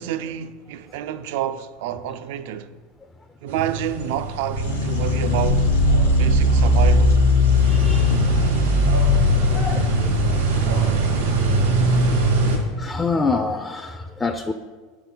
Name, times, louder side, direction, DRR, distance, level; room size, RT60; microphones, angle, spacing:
voice 1, 0.0-2.7 3.4-5.7 6.1-7.2, right 10 dB, 70° right, 0.3 m, -29 dB
sound 1, 3.5-12.6, right 3 dB, 85° right, 1.4 m, -22 dB
sound 2, 4.6-11.1, left 4 dB, 80° left, 0.5 m, -20 dB
voice 2, 7.7-8.2 9.3-10.2 12.8-14.5, left 3 dB, 15° left, 0.3 m, -27 dB
6.9 x 3.8 x 4.3 m
hypercardioid pair, 105°, 0 cm